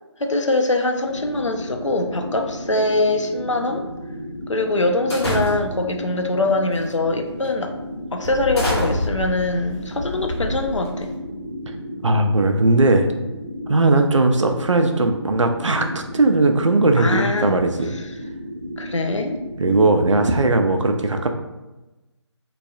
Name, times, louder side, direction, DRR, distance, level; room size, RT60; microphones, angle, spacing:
voice 1, 0.2-3.8 4.5-7.7 8.1-11.1 13.9-14.1 17.0-17.6 17.9-18.1 18.8-19.4, left 2 dB, 85° left, 4 dB, 0.4 m, -23 dB
sound 1, 1.0-20.8, equal, 15° left, 0.5 m, -34 dB
sound 2, 5.1-5.9 6.7-7.0 7.4-7.6 8.2-11.1, left 1 dB, 60° left, 1.0 m, -27 dB
voice 2, 12.0-13.1 13.7-18.0 19.6-21.3, right 2 dB, 85° right, 5 dB, 0.4 m, -18 dB
3.2 x 2.3 x 2.3 m, 1.1 s
figure-of-eight pair, 155°, 15 cm